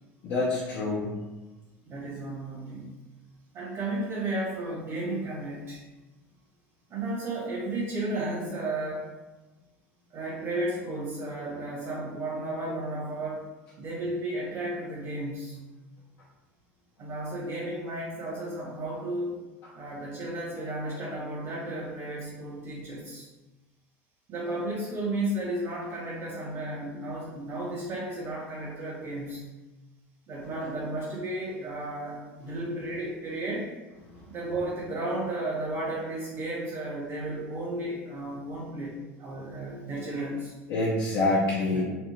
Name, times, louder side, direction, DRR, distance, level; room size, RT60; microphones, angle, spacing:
voice 1, 0.2-1.2 34.1-34.2 40.7-41.8, left 2 dB, 60° left, -6 dB, 0.8 m, -26 dB
voice 2, 1.8-2.9 3.5-5.8 6.9-9.1 10.1-13.5 13.8-15.6 17.0-19.3 19.7-23.3 24.3-29.5 30.3-33.7 34.3-40.5 41.7-41.8, right 1 dB, 50° right, -6 dB, 1.2 m, -33 dB
3.4 x 2.0 x 3.2 m, 1.1 s
hypercardioid pair, 90°, 7 cm